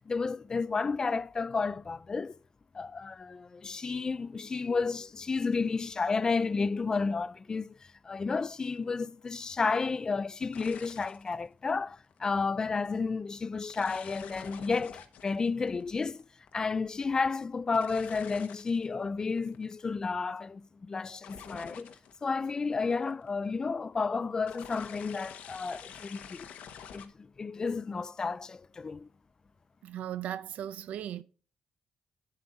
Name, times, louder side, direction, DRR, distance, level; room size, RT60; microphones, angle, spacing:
voice 1, 0.1-2.3 2.7-16.3 16.5-21.9 22.2-26.5 26.9-29.1, left 4 dB, 30° left, 0.3 m, -32 dB
sound 1, 8.5-8.7 10.4-11.3 12.0-12.3 13.7-16.7 17.7-18.9 19.2-19.8 21.2-22.3 22.7-23.3 24.5-27.1, left 8 dB, 80° left, 1.1 m, -48 dB
voice 2, 29.8-31.2, right 11 dB, 80° right, 0.6 m, -37 dB
8.5 x 7.8 x 3.9 m
cardioid pair, 120°, 2 cm